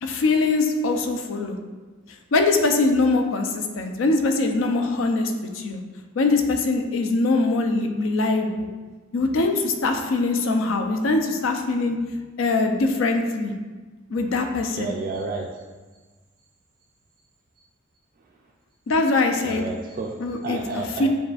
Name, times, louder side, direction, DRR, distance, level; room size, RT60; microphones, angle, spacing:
voice 1, 0.0-1.6 2.3-5.8 6.2-8.7 9.1-12.0 12.4-13.5 14.1-14.9 18.9-19.6 20.2-21.1, left 3 dB, 70° left, 5 dB, 0.5 m, -22 dB
voice 2, 14.8-15.6 19.4-20.1 20.4-21.1, right 4 dB, 45° right, -1 dB, 0.3 m, -31 dB
7.3 x 2.4 x 2.3 m, 1.3 s
head